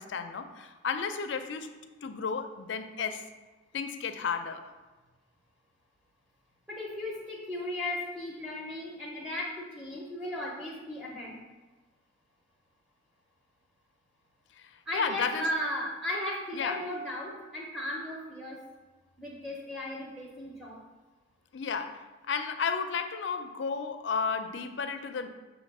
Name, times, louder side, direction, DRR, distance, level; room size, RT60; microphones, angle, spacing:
voice 1, 0.0-1.7 2.0-3.3 3.7-4.7 14.6-15.5 16.5-16.8 21.5-25.3, left 5 dB, 65° left, 8 dB, 0.4 m, -33 dB
voice 2, 6.7-11.4 14.8-18.6 19.2-20.8, left 1 dB, 5° right, -4 dB, 0.7 m, -36 dB
6.5 x 2.9 x 5.3 m, 1.2 s
head